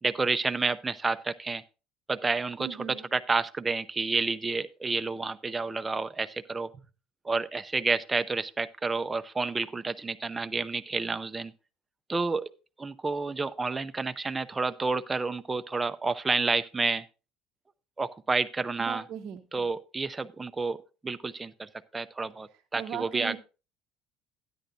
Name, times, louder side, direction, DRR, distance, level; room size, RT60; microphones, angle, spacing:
voice 1, 0.0-1.6 2.1-6.7 7.2-11.5 12.1-12.5 12.8-17.1 18.0-19.0 19.5-20.8 21.0-23.3, right 3 dB, 15° right, 11 dB, 0.5 m, -30 dB
voice 2, 2.6-3.1 18.8-19.4 22.8-23.4, right 9 dB, 45° right, 3 dB, 0.8 m, -38 dB
13.0 x 10.0 x 2.7 m, 0.32 s
cardioid pair, 125°, 0 cm